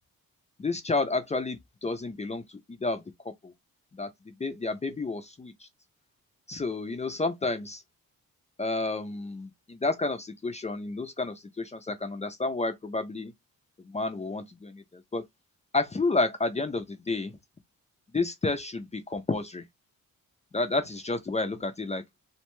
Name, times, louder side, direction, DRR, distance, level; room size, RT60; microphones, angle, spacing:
voice 1, 0.6-3.5 3.9-5.7 6.5-7.8 8.6-13.3 13.8-15.2 15.7-17.4 18.1-19.6 20.5-22.0, left 3 dB, 20° left, 0.3 m, -31 dB
2.5 x 2.2 x 2.9 m
cardioid pair, 110°, 36 cm